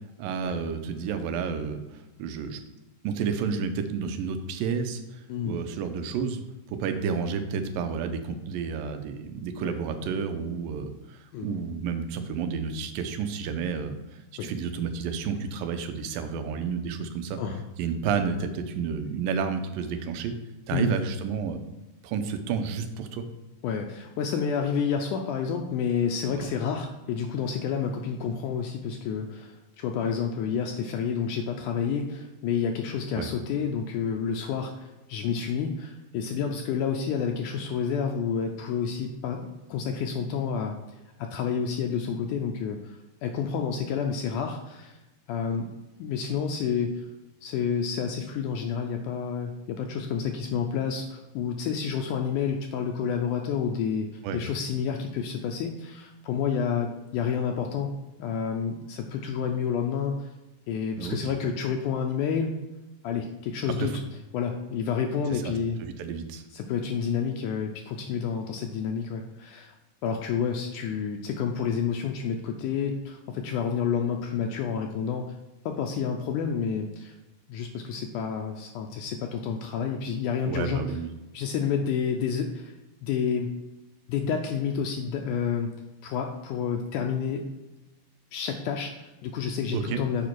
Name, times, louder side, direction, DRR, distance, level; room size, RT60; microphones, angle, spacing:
voice 1, 0.2-2.6 3.0-6.4 6.7-17.4 17.8-20.3 20.7-21.6 22.0-23.2 26.3-26.5 33.1-33.3 54.2-54.4 61.0-61.2 63.8-64.0 65.3-65.5 65.8-66.4 80.5-81.1 89.7-90.0, right 6 dB, 90° right, 8 dB, 2.4 m, -31 dB
voice 2, 5.3-5.6 9.6-9.8 11.3-11.5 14.4-14.5 17.4-17.6 20.7-20.9 23.6-40.7 41.2-45.0 45.3-45.7 46.0-46.9 47.4-57.9 58.2-60.3 60.7-62.5 63.0-64.0 64.3-65.8 66.5-69.7 70.0-75.2 75.7-77.1 77.5-80.8 81.3-82.7 83.0-83.5 84.1-85.7 86.0-87.4 88.3-90.3, left 7 dB, 80° left, 3 dB, 1.9 m, -29 dB
7.3 x 5.0 x 4.5 m, 1.1 s
omnidirectional pair, 4.0 m